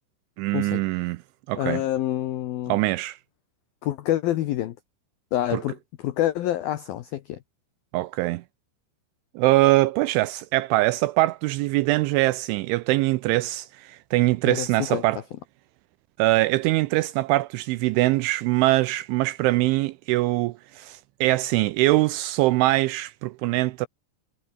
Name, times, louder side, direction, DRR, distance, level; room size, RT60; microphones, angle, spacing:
voice 1, 0.4-1.2 1.5-1.8 2.7-3.2 5.5-5.6 7.9-8.4 9.4-15.2 16.2-23.9, right 19 dB, 80° right, 2.9 m, -23 dB
voice 2, 1.6-2.8 3.8-4.8 5.3-7.4 14.5-15.0, left 13 dB, 80° left, 2.1 m, -27 dB
omnidirectional pair, 5.8 m